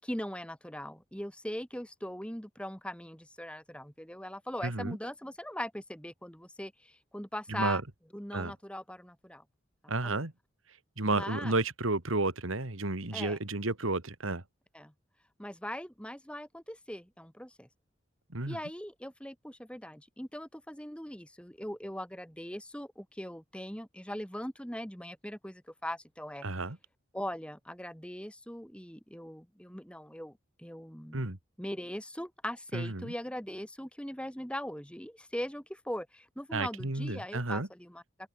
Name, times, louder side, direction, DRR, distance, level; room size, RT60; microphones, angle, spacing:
voice 1, 0.0-7.8 8.1-9.4 9.8-10.2 11.0-11.5 13.1-13.4 14.7-14.9 15.4-17.7 18.5-26.5 27.1-31.3 31.6-38.0, equal, 5° left, 4.3 m, -40 dB
voice 2, 4.6-5.0 7.5-7.8 8.3-8.5 9.9-10.3 11.0-14.4 18.3-18.6 26.4-26.8 31.1-31.4 32.7-33.1 36.5-37.7, right 2 dB, 85° right, 2.5 m, -32 dB
open air
head